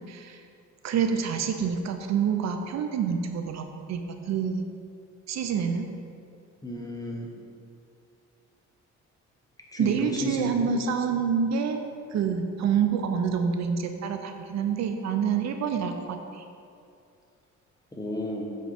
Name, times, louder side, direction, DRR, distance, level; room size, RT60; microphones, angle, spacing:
voice 1, 0.1-0.4 0.8-4.6 5.3-5.9 9.8-11.8 12.1-16.4, right 6 dB, 65° right, 6 dB, 0.6 m, -27 dB
voice 2, 6.6-7.3 9.7-10.6 17.9-18.5, equal, 10° left, -1 dB, 1.1 m, -31 dB
7.7 x 3.8 x 5.0 m, 2.5 s
cardioid pair, 90°, 30 cm